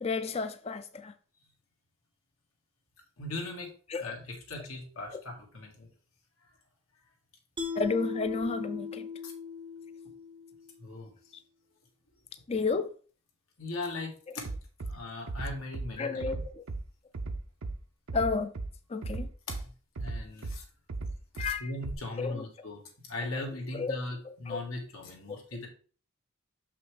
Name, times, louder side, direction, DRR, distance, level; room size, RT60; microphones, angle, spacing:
voice 1, 0.0-1.1 3.9-4.1 7.8-9.1 12.5-12.9 16.0-16.6 18.1-18.5 18.9-19.3 21.4-21.7 22.2-22.4 23.7-23.9 24.5-24.6, left 4 dB, 30° left, 0.4 m, -31 dB
voice 2, 3.2-5.9 9.2-9.3 10.8-11.1 13.6-14.5 14.8-16.2 19.5-19.7 20.0-20.6 21.3-25.7, left 2 dB, 80° left, 1.9 m, -39 dB
Mallet percussion, 7.6-10.8, left 6 dB, 25° right, 0.6 m, -38 dB
Bass drum, 14.4-14.9 15.3-15.9 16.2-16.8 17.1-17.8 18.1-18.7 19.0-19.6 20.0-20.6 20.9-21.5 21.8-21.9, right 3 dB, 80° right, 0.7 m, -35 dB
6.2 x 5.7 x 3.3 m
head